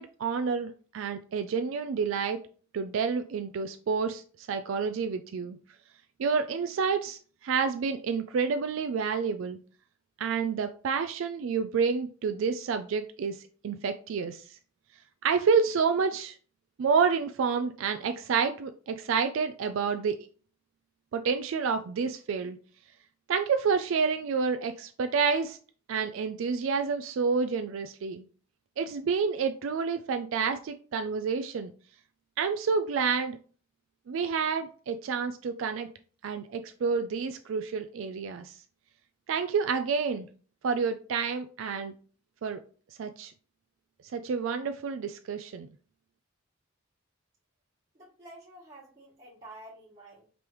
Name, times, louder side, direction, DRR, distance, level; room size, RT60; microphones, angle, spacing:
voice 1, 0.0-2.4 2.7-5.6 6.2-9.6 10.2-13.4 13.6-14.4 15.2-16.3 16.8-20.2 21.1-22.6 23.3-25.6 25.9-28.2 28.8-31.7 32.4-33.4 34.1-35.9 36.2-38.5 39.3-40.3 40.6-41.9 42.4-42.6 43.0-43.3 44.1-45.7, right 5 dB, 65° right, 8 dB, 0.3 m, -29 dB
voice 2, 47.9-50.3, right 1 dB, 30° right, -10 dB, 1.5 m, -49 dB
5.2 x 3.0 x 3.1 m, 0.41 s
head